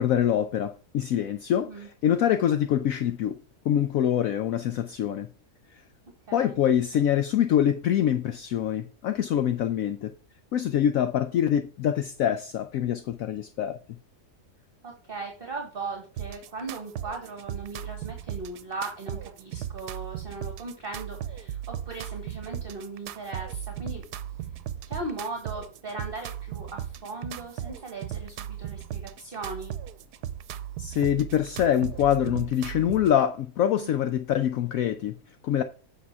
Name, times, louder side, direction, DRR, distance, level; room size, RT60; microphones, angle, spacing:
voice 1, 0.0-3.4 3.6-5.3 6.3-10.1 10.5-14.0 30.8-35.2 35.4-35.6, left 10 dB, 70° left, 0.9 m, -25 dB
voice 2, 6.3-6.6 14.8-24.0 24.9-29.7 33.7-34.0, right 3 dB, 35° right, 1.6 m, -38 dB
sound 1, 16.2-33.2, right 10 dB, 85° right, 1.2 m, -37 dB
8.6 x 5.8 x 4.6 m
omnidirectional pair, 1.7 m